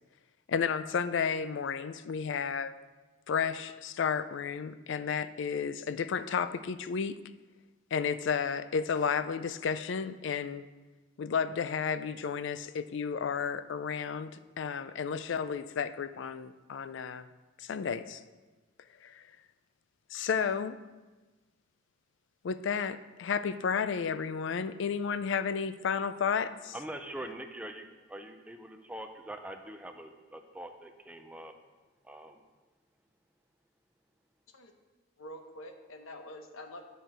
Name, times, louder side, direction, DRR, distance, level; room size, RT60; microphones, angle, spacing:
voice 1, 0.5-2.7 3.3-7.1 7.9-10.7 11.2-17.3 17.6-18.2 19.0-19.2 20.1-20.8 22.4-26.8, left 6 dB, 60° left, 13 dB, 0.4 m, -32 dB
voice 2, 26.7-31.5 32.1-32.4, right 1 dB, 5° right, 5 dB, 0.4 m, -43 dB
voice 3, 35.2-36.8, left 1 dB, 75° left, 6 dB, 0.8 m, -46 dB
9.1 x 4.5 x 4.9 m, 1.2 s
head